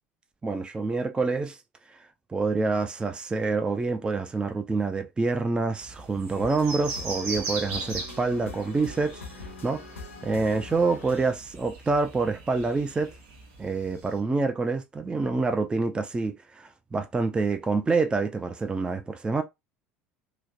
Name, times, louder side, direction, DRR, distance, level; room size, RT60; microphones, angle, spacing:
voice 1, 0.4-1.6 1.9-2.0 2.3-9.8 10.2-13.1 13.6-19.4, right 3 dB, 15° right, 0.3 m, -27 dB
sound 1, 5.8-14.2, right 3 dB, 65° right, 0.9 m, -39 dB
sound 2, 6.3-11.3, left 4 dB, 85° left, 0.6 m, -42 dB
3.0 x 2.0 x 2.4 m
figure-of-eight pair, 70°, 7 cm